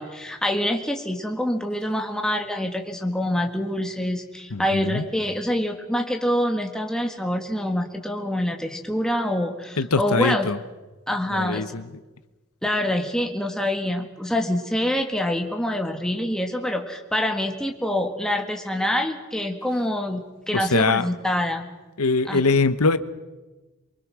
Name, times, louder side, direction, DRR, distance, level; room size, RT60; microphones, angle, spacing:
voice 1, 0.0-10.5 11.1-11.7 12.6-20.2 20.5-21.7 22.3-22.4, left 1 dB, 5° left, 3 dB, 1.8 m, -26 dB
voice 2, 4.5-5.0 9.8-10.6 11.3-11.8 20.5-21.1 22.0-23.0, left 3 dB, 85° left, 12 dB, 1.0 m, -22 dB
24.5 x 24.0 x 6.3 m, 1.2 s
head